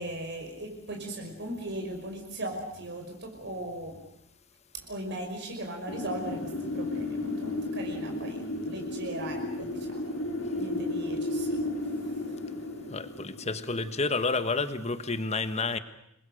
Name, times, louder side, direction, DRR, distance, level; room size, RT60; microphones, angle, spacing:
voice 1, 0.0-4.0 4.9-8.4 8.6-11.7, right 1 dB, 55° right, 2 dB, 5.5 m, -38 dB
Wind, 5.9-14.6, left 2 dB, 70° left, 6.7 m, -34 dB
voice 2, 12.9-15.8, left 3 dB, 30° left, 10 dB, 1.4 m, -30 dB
29.5 x 22.5 x 6.6 m, 0.80 s
head